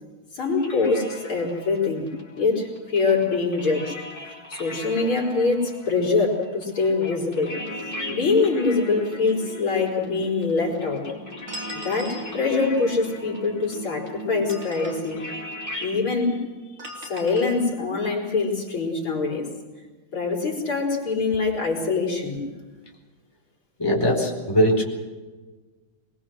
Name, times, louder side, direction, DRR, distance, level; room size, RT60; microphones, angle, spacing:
voice 1, 0.3-2.1 2.4-7.5 8.1-11.0 11.7-15.2 15.8-16.4 17.0-19.5 20.1-22.4, left 4 dB, 80° left, -2 dB, 5.1 m, -24 dB
sound 1, 0.6-16.0, left 2 dB, 30° left, 5.0 m, -40 dB
sound 2, 7.4-16.4, equal, 65° right, 5.1 m, -39 dB
sound 3, 11.5-12.3 14.3-15.1 16.8-17.6, equal, 35° right, 4.1 m, -39 dB
voice 2, 23.8-24.8, equal, 10° left, -1 dB, 4.5 m, -20 dB
22.5 x 22.5 x 6.3 m, 1.3 s
omnidirectional pair, 2.3 m